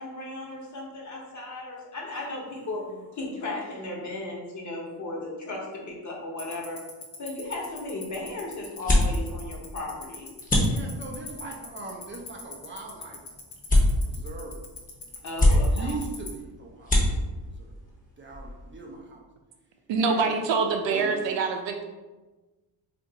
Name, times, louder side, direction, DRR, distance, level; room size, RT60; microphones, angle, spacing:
voice 1, 0.0-2.8 3.1-6.8 7.2-10.3 15.2-15.9, left 2 dB, 40° left, -2 dB, 1.0 m, -35 dB
Tick-tock, 6.4-16.3, left 8 dB, 75° left, 0.9 m, -39 dB
sound 1, 7.4-19.0, left 1 dB, 20° left, 0.8 m, -28 dB
voice 2, 10.6-13.2 14.0-14.6 15.2-17.2 17.5-17.8 18.2-19.2 20.0-20.3 20.8-21.3, right 3 dB, 30° right, -1 dB, 0.5 m, -40 dB
voice 3, 19.9-21.8, right 4 dB, 80° right, 4 dB, 0.6 m, -25 dB
2.5 x 2.5 x 3.9 m, 1.2 s
cardioid pair, 100°, 44 cm